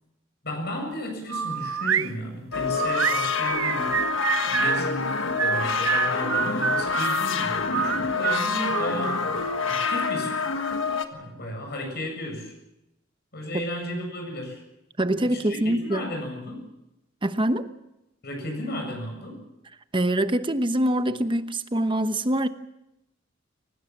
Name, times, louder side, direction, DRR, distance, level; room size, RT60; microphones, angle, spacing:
voice 1, 0.4-4.0 4.5-9.2 9.6-10.7 11.1-12.5 13.3-14.6 15.2-16.6 18.2-19.4, left 1 dB, 55° left, 7.6 m, -34 dB
sound 1, 1.3-2.1 2.8-4.8 5.4-7.2 7.7-9.6, right 8 dB, 85° right, 0.7 m, -27 dB
sound 2, 2.5-11.1, left 4 dB, 70° left, 1.7 m, -27 dB
voice 2, 15.0-16.0 17.2-17.7 19.9-22.5, right 1 dB, 25° right, 1.1 m, -24 dB
23.0 x 19.0 x 7.4 m
head